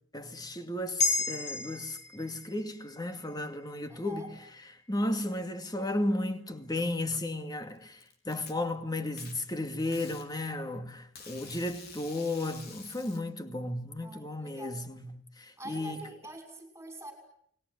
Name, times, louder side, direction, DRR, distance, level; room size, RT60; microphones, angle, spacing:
voice 1, 0.1-4.4 4.9-8.0 8.3-16.0, left 1 dB, 20° left, 2.3 m, -34 dB
sound 1, 1.0-5.5 5.9-6.0, left 4 dB, 35° left, 4.3 m, -35 dB
voice 2, 3.9-4.3 14.0-14.8 15.6-17.1, right 1 dB, 15° right, 6.1 m, -45 dB
Packing tape duct tape, 7.5-8.5 9.2-9.3 9.9-10.3 11.2-13.2, left 5 dB, 55° left, 4.4 m, -48 dB
30.0 x 20.5 x 9.5 m
head